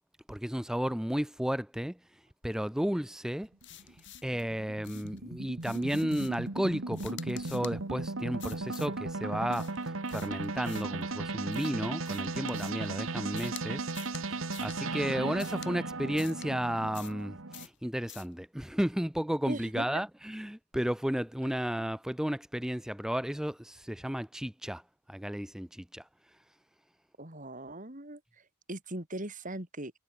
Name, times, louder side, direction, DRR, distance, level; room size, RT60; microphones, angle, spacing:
voice 1, 0.3-2.0 2.4-3.5 4.2-9.7 10.1-13.9 14.3-24.8 25.1-26.0, equal, 5° right, 0.5 m, -33 dB
sound 1, 3.4-17.7, right 3 dB, 75° right, 1.7 m, -36 dB
sound 2, 3.6-4.4 4.8-5.2 5.6-6.5 6.9-7.8 8.4-9.0 9.5-11.0 11.5-12.9 13.4-13.6 13.9-14.2 14.5-14.8 15.4-15.7 16.2-16.5 16.9-17.2 17.5-17.8 18.1-18.3, left 13 dB, 60° left, 5.0 m, -49 dB
voice 2, 19.5-19.9 21.4-21.5 27.2-29.9, right 1 dB, 40° right, 3.9 m, -40 dB
head